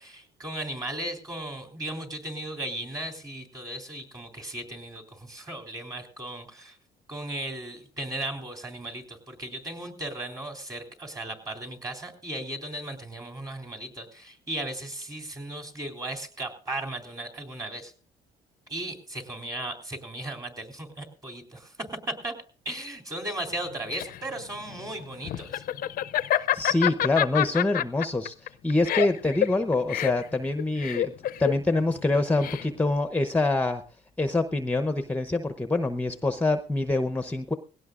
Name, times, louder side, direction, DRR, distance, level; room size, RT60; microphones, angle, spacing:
voice 1, 0.0-6.8 7.1-17.9 18.7-21.7 22.1-22.3 22.7-25.6, right 1 dB, 20° right, 3 dB, 3.6 m, -36 dB
Laughter, 23.5-33.0, left 12 dB, 55° left, 0.6 m, -28 dB
voice 2, 26.5-31.1 31.4-33.8 34.2-37.5, left 2 dB, 10° left, 9 dB, 0.8 m, -25 dB
19.5 x 17.0 x 2.5 m, 0.38 s
cardioid pair, 110°, 17 cm